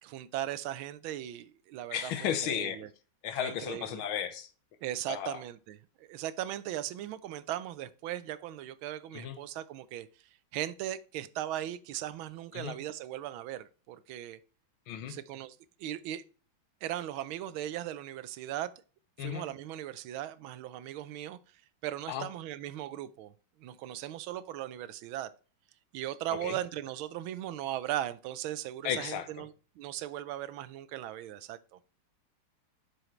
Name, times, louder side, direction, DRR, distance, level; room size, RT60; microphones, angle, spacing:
voice 1, 0.0-2.9 3.4-4.0 4.8-10.1 10.5-14.4 15.1-16.2 16.8-18.7 19.2-21.4 21.8-23.3 23.6-25.3 25.9-31.8, right 12 dB, 80° right, 1.4 m, -38 dB
voice 2, 1.9-2.8 3.2-4.5 5.1-5.4 9.1-9.4 12.5-12.8 14.9-15.2 19.2-19.5 22.1-22.3 26.4-26.6 28.8-29.4, left 9 dB, 80° left, 1.7 m, -34 dB
7.5 x 6.4 x 3.1 m
omnidirectional pair, 2.3 m